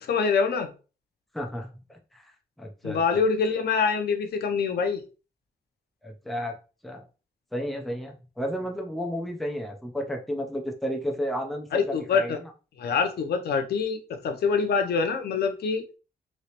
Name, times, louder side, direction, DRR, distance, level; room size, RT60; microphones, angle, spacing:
voice 1, 0.1-0.7 2.8-5.0 11.7-12.4 12.8-15.8, left 5 dB, 80° left, 6 dB, 0.6 m, -25 dB
voice 2, 1.3-2.3 2.6-3.2 6.0-6.6 6.8-7.0 7.5-12.5, equal, ahead, 2 dB, 0.5 m, -32 dB
3.1 x 2.9 x 2.9 m, 0.34 s
wide cardioid pair, 170°, 17 cm